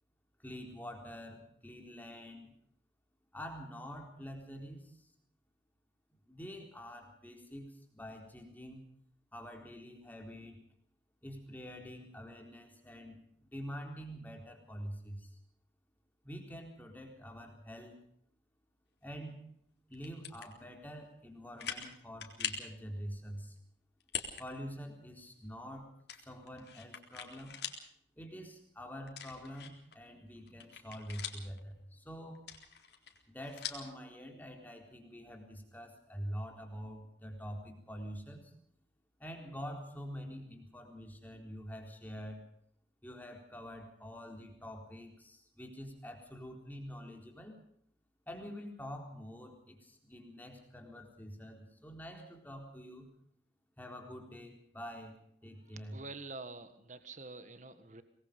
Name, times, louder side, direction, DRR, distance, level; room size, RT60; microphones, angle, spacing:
voice 1, 0.4-2.5 3.3-5.1 6.3-8.8 9.3-10.6 11.2-15.4 16.2-18.0 19.0-19.5 19.9-23.6 24.4-27.6 28.2-32.4 33.3-38.5 39.2-42.4 43.0-47.6 48.3-53.1 53.8-56.0, equal, 10° left, 3 dB, 4.0 m, -46 dB
sound 1, 19.9-20.5 21.0-21.1 21.6-21.9 22.2-22.7 24.0-24.4 24.8-24.9 26.1-27.8 28.2-28.3 29.1-29.9 30.4-31.6 32.3-33.9, left 8 dB, 70° left, 3.8 m, -42 dB
voice 2, 55.9-58.0, right 3 dB, 45° right, 11 dB, 1.6 m, -46 dB
25.0 x 20.5 x 5.3 m, 0.68 s
head